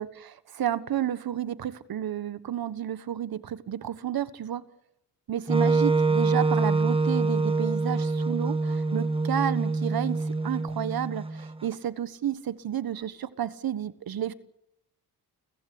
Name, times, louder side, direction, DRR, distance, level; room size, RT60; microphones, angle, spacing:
voice 1, 0.0-4.6 5.3-14.3, right 10 dB, 65° right, 14 dB, 1.4 m, -31 dB
Wind instrument woodwind instrument, 5.5-11.5, right 3 dB, 15° right, 1.4 m, -25 dB
30.0 x 15.0 x 8.4 m, 0.81 s
cardioid pair, 60°, 39 cm